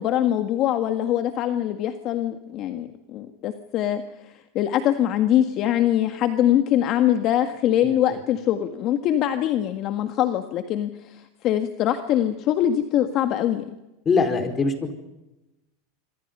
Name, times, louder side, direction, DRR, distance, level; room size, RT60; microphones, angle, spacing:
voice 1, 0.0-13.6, left 11 dB, 45° left, 8 dB, 1.7 m, -23 dB
voice 2, 14.0-14.9, left 4 dB, 25° left, 7 dB, 4.6 m, -22 dB
26.5 x 26.0 x 5.6 m, 1.0 s
supercardioid pair, 120°, 0 cm